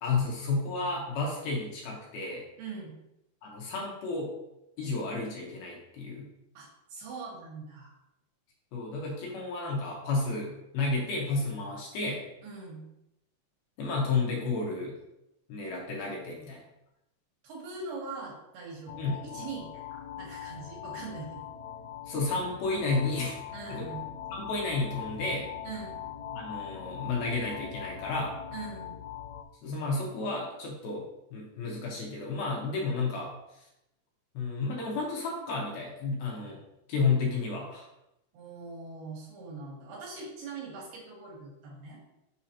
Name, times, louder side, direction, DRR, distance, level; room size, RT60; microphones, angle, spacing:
voice 1, 0.0-2.4 3.4-4.3 4.8-6.3 8.7-12.2 13.8-14.9 15.5-16.6 19.0-19.2 22.1-23.4 23.7-23.9 24.3-25.5 26.3-28.4 29.6-31.0 31.3-33.3 34.3-36.6 36.9-37.9, left 3 dB, 70° left, -2 dB, 2.6 m, -31 dB
voice 2, 2.6-3.0 6.5-7.9 12.4-12.8 17.4-21.5 23.5-24.1 25.6-26.0 28.5-29.0 38.3-42.0, right 4 dB, 75° right, -4 dB, 3.0 m, -42 dB
sound 1, 18.9-29.4, left 10 dB, 85° left, 2.8 m, -42 dB
6.6 x 5.6 x 2.8 m, 0.87 s
omnidirectional pair, 4.9 m